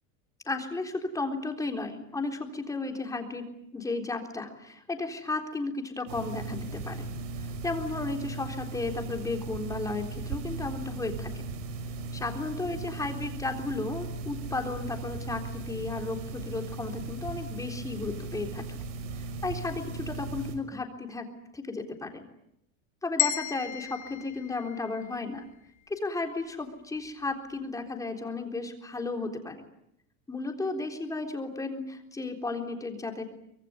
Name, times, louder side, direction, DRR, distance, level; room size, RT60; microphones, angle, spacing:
voice 1, 0.5-3.4 3.7-7.1 7.6-11.4 12.1-18.8 19.4-21.3 21.5-22.3 23.0-25.5 25.9-29.6 30.3-33.2, left 3 dB, 10° left, 4 dB, 3.7 m, -34 dB
sound 1, 6.1-20.6, right 3 dB, 75° right, 6.3 m, -37 dB
sound 2, 23.2-25.4, left 14 dB, 45° left, 2.4 m, -33 dB
25.0 x 23.0 x 9.5 m, 0.76 s
supercardioid pair, 155°, 38 cm